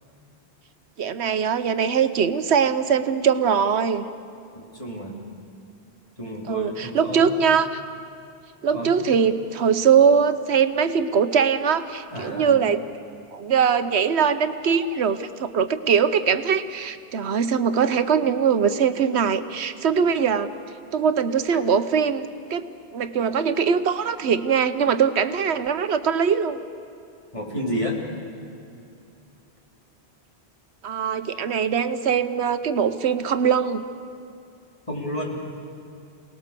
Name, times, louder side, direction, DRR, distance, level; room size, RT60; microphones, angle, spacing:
voice 1, 1.0-4.0 6.5-7.8 8.6-12.8 13.3-20.5 20.9-22.6 22.9-26.6 30.8-33.8, right 7 dB, 85° right, 11 dB, 1.1 m, -21 dB
voice 2, 4.5-5.2 6.2-7.3 8.7-8.9 12.1-12.5 27.3-28.0 34.9-35.4, equal, 30° left, -3 dB, 3.7 m, -30 dB
28.5 x 19.0 x 6.8 m, 2.6 s
omnidirectional pair, 1.1 m